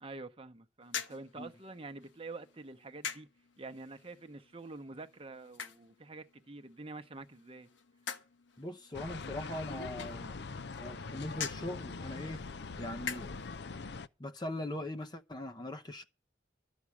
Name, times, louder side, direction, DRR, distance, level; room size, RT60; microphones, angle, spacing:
voice 1, 0.0-3.3 3.6-7.7, right 3 dB, 30° right, 0.9 m, -47 dB
sound 1, 0.8-13.6, left 7 dB, 80° left, 1.2 m, -47 dB
voice 2, 8.6-10.4 10.8-12.4 12.8-13.4 14.2-16.0, left 1 dB, 20° left, 0.7 m, -41 dB
sound 2, 8.9-14.1, left 4 dB, 60° left, 0.6 m, -42 dB
13.0 x 6.1 x 8.4 m
head